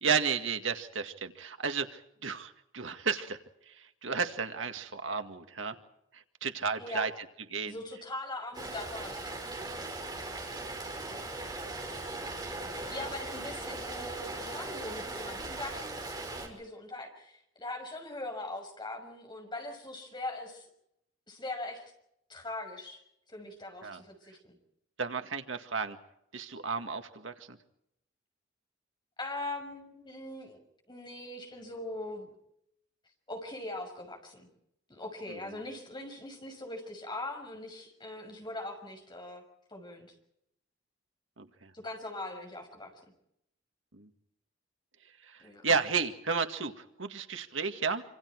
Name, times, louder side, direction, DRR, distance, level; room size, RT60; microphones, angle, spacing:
voice 1, 0.0-3.4 3.7-5.8 6.1-7.1 7.5-7.7 23.8-24.0 25.0-26.0 26.3-27.6 41.4-41.7 43.9-44.1 45.2-48.0, right 5 dB, 80° right, 7 dB, 1.9 m, -33 dB
voice 2, 6.8-7.1 7.7-9.7 10.9-11.3 12.9-20.7 21.3-21.8 22.3-23.0 23.3-24.6 29.2-30.6 30.9-32.3 33.3-34.5 34.9-39.4 39.7-40.1 41.7-42.9 45.4-45.6, left 2 dB, 25° left, 2 dB, 6.2 m, -41 dB
Rain, 8.5-16.5, right 2 dB, 20° right, 5.4 m, -39 dB
27.0 x 26.5 x 4.6 m, 0.78 s
head